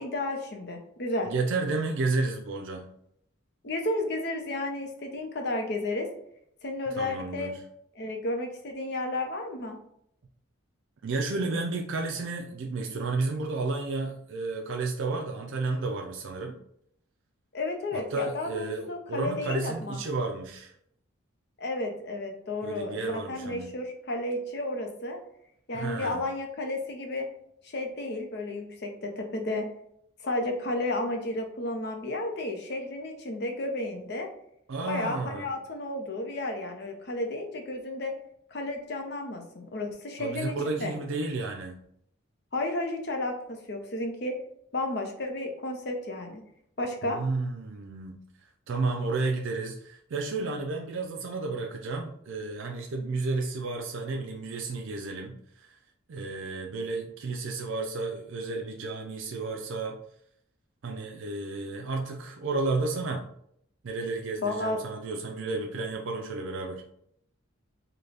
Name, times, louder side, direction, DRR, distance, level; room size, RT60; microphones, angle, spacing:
voice 1, 0.0-1.3 3.6-6.1 6.6-7.5 8.0-9.8 17.5-20.0 21.6-25.2 25.7-27.3 27.6-29.7 30.2-34.3 34.9-38.1 38.5-40.9 42.5-44.4 44.7-46.4 46.8-47.2 64.4-64.8, left 2 dB, 50° left, 3 dB, 0.6 m, -32 dB
voice 2, 1.3-2.9 7.0-7.6 11.0-16.6 17.9-20.7 22.6-23.7 25.7-26.2 34.7-35.5 40.2-41.8 47.0-48.2 48.7-55.8 56.1-60.0 60.8-63.3 63.8-66.8, right 3 dB, 65° right, 1 dB, 0.4 m, -32 dB
3.8 x 2.2 x 3.3 m, 0.71 s
head